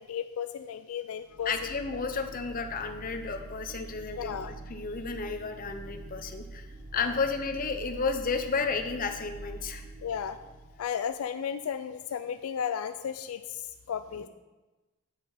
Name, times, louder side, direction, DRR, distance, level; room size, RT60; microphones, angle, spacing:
voice 1, 0.0-1.7 4.1-4.5 6.9-7.2 10.0-10.4 10.8-14.3, left 8 dB, 80° left, 10 dB, 0.4 m, -34 dB
sound 1, 1.2-10.9, right 3 dB, 80° right, 1.3 m, -45 dB
voice 2, 1.4-9.8, left 4 dB, 40° left, 6 dB, 0.8 m, -32 dB
8.6 x 5.2 x 5.7 m, 1.1 s
head